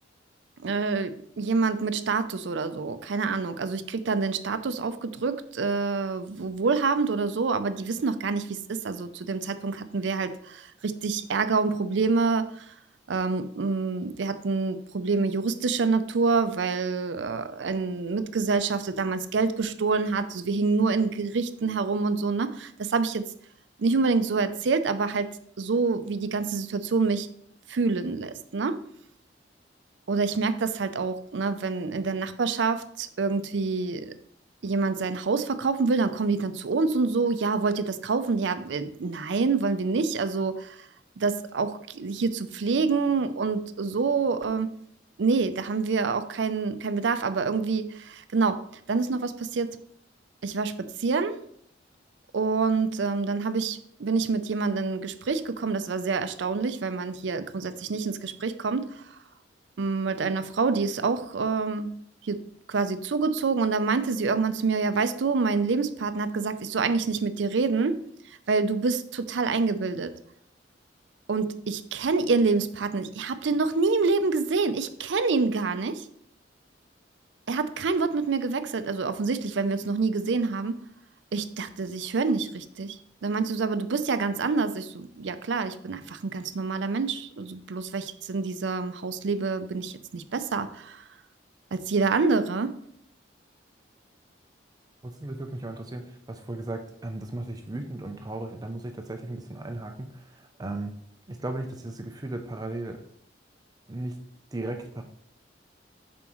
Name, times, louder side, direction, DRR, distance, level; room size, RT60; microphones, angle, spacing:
voice 1, 0.6-12.7 13.1-23.2 23.8-25.3 25.6-27.3 27.7-28.8 30.1-34.1 34.6-40.9 41.2-44.7 45.2-48.6 48.9-49.8 50.4-51.4 52.3-59.2 59.8-62.0 62.2-62.4 62.7-70.1 71.3-76.1 77.5-80.8 81.3-91.0 91.7-92.8, right 4 dB, 70° right, 11 dB, 0.5 m, -27 dB
voice 2, 95.0-100.9 101.3-103.0 103.9-104.2 104.5-105.0, right 2 dB, 20° right, 5 dB, 0.5 m, -36 dB
7.1 x 5.2 x 3.1 m, 0.66 s
head